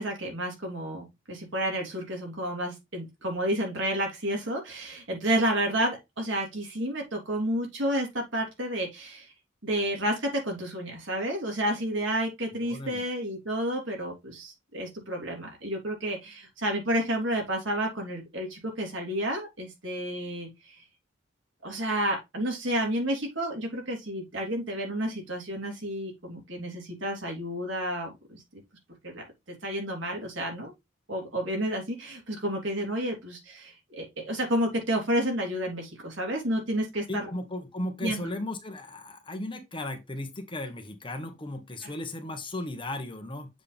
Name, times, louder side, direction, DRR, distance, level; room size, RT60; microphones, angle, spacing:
voice 1, 0.0-9.3 9.6-20.5 21.6-28.4 29.0-29.2 29.6-30.7 31.1-37.2 38.0-38.3, right 1 dB, 80° right, 3.3 m, -30 dB
voice 2, 12.5-13.0 37.1-43.5, left 1 dB, 25° left, 1.2 m, -36 dB
7.5 x 4.7 x 3.4 m
head